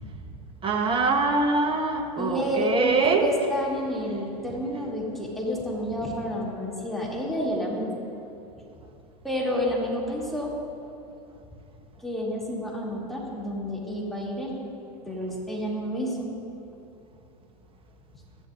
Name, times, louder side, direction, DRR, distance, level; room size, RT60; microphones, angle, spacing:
voice 1, 0.6-3.3, right 3 dB, 25° right, 4 dB, 1.2 m, -23 dB
voice 2, 2.2-7.9 9.2-10.5 12.0-14.6 15.1-16.3, equal, ahead, -5 dB, 2.4 m, -29 dB
14.0 x 12.0 x 2.5 m, 2.7 s
hypercardioid pair, 95°, 21 cm